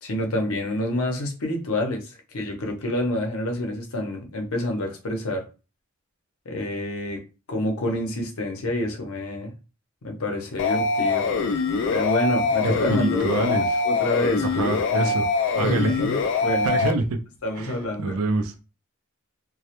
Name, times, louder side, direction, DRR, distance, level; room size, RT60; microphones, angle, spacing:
voice 1, 0.0-5.4 6.5-7.2 7.5-9.5 10.0-13.6 13.8-15.2 15.6-16.7 17.4-18.2, left 1 dB, 90° left, 0.7 m, -28 dB
sound 1, 10.6-16.9, left 4 dB, 55° left, 0.3 m, -23 dB
voice 2, 12.6-13.8 14.4-15.3 15.5-16.0 16.6-17.2 17.6-18.5, right 3 dB, 85° right, 0.4 m, -26 dB
2.2 x 2.1 x 2.9 m
head